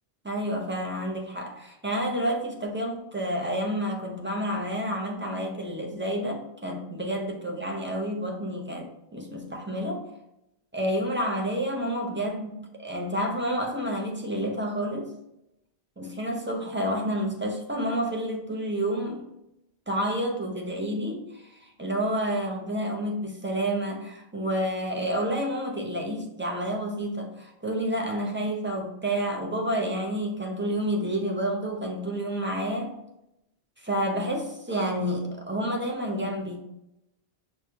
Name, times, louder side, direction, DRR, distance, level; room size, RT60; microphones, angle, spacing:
voice 1, 0.2-10.0 10.7-15.1 16.0-19.3 19.9-33.0 33.8-36.6, equal, 20° right, -1 dB, 0.3 m, -29 dB
6.1 x 2.2 x 2.8 m, 0.85 s
omnidirectional pair, 1.1 m